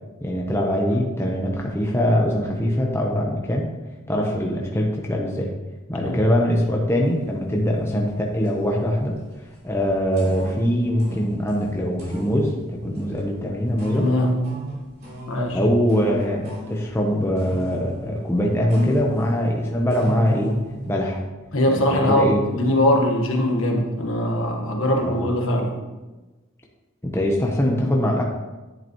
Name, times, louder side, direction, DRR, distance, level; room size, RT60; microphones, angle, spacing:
voice 1, 0.2-3.7 4.1-5.5 5.9-9.1 9.6-14.1 15.5-20.6 20.9-21.2 21.7-22.4 25.0-25.2 27.0-28.2, equal, 10° left, -1 dB, 0.8 m, -22 dB
sound 1, 7.1-7.3 7.6-21.1, equal, 45° right, 3.3 m, -35 dB
voice 2, 13.9-14.4 15.3-15.6 21.5-25.7, left 1 dB, 65° left, 1 dB, 1.4 m, -21 dB
10.5 x 8.0 x 3.0 m, 1.2 s
head